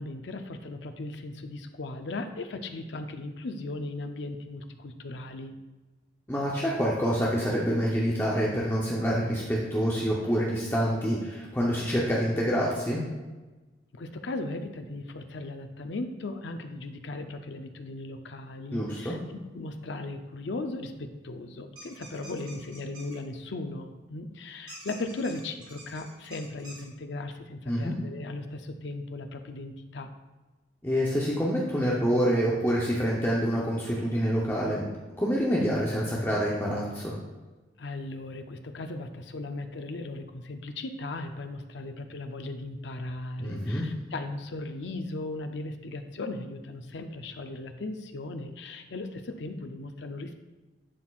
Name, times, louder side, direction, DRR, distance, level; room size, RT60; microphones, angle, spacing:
voice 1, 0.0-5.5 13.9-19.2 19.5-30.1 37.8-50.4, left 2 dB, 80° left, 7 dB, 0.6 m, -37 dB
voice 2, 6.3-13.0 18.7-19.1 27.7-27.9 30.8-34.8 35.1-37.1 43.4-43.9, equal, 10° left, -5 dB, 0.7 m, -27 dB
sound 1, 21.7-23.2 24.7-26.8, right 1 dB, 25° right, 1.8 m, -47 dB
11.0 x 4.4 x 2.4 m, 1.2 s
head